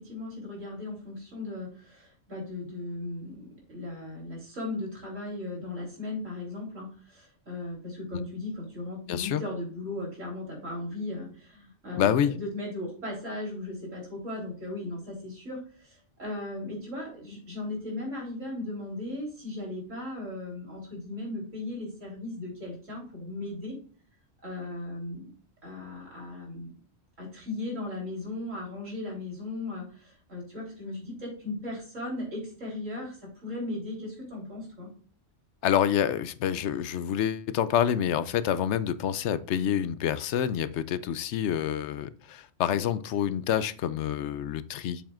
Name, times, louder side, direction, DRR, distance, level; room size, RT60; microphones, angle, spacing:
voice 1, 0.0-23.8 24.4-25.3 25.6-26.7 27.2-34.9, left 2 dB, 90° right, -2 dB, 3.9 m, -37 dB
voice 2, 9.1-9.4 12.0-12.3 35.6-45.0, left 9 dB, 70° left, 15 dB, 0.8 m, -27 dB
7.3 x 7.2 x 2.5 m, 0.44 s
omnidirectional pair, 1.3 m